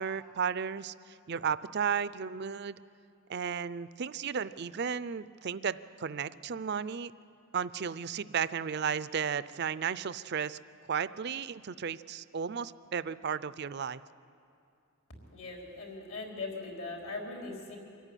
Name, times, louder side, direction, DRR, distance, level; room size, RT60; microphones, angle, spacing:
voice 1, 0.0-2.8 3.3-7.1 7.5-10.6 10.9-14.0, right 7 dB, 50° right, 16 dB, 0.5 m, -34 dB
voice 2, 15.3-17.8, left 3 dB, 70° left, -1 dB, 4.7 m, -40 dB
24.5 x 14.0 x 9.9 m, 2.6 s
head